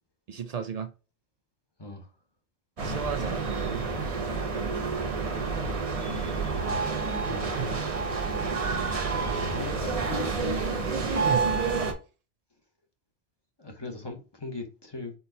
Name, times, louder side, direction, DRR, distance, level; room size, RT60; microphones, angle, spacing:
voice 1, 0.3-0.9 2.8-3.8 4.3-4.8 7.4-7.8 8.7-9.0 11.0-11.6, right 7 dB, 65° right, 0.4 m, -35 dB
sound 1, 2.8-11.9, right 4 dB, 35° right, 0.8 m, -29 dB
voice 2, 6.4-7.8 9.1-10.6 13.6-15.1, left 2 dB, 25° left, 1.0 m, -40 dB
4.5 x 4.3 x 2.7 m
omnidirectional pair, 1.2 m